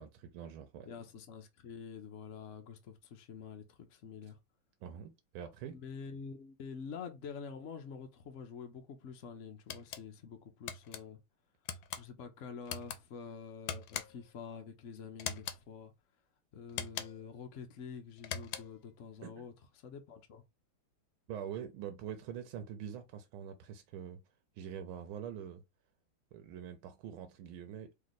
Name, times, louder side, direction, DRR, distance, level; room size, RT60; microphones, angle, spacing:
voice 1, 0.0-0.9 4.8-5.8 19.2-19.5 21.3-24.2 24.6-25.6 26.3-27.9, right 9 dB, 90° right, 1.4 m, -44 dB
voice 2, 0.8-4.4 5.6-11.2 12.0-15.9 16.5-20.4, left 6 dB, 60° left, 0.8 m, -47 dB
sound 1, 9.7-10.0 10.7-11.0 11.7-12.0 12.7-13.0 13.7-14.3 15.2-15.6 16.7-17.3 18.2-18.8, left 8 dB, 80° left, 1.4 m, -41 dB
3.2 x 3.1 x 4.0 m
omnidirectional pair, 2.2 m